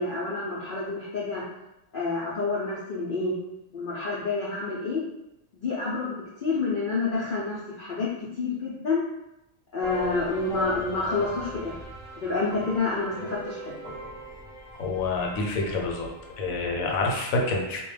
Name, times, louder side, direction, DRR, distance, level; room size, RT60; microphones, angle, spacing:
voice 1, 0.0-1.4 1.9-3.3 3.7-5.0 5.6-9.0 9.7-11.8 12.2-13.8, left 3 dB, 70° left, -7 dB, 0.5 m, -28 dB
sound 1, 9.8-16.4, equal, 30° right, 0.8 m, -39 dB
voice 2, 14.8-16.1 16.4-17.8, left 3 dB, 85° left, 0 dB, 1.0 m, -27 dB
2.2 x 2.2 x 3.1 m, 0.90 s
omnidirectional pair, 1.4 m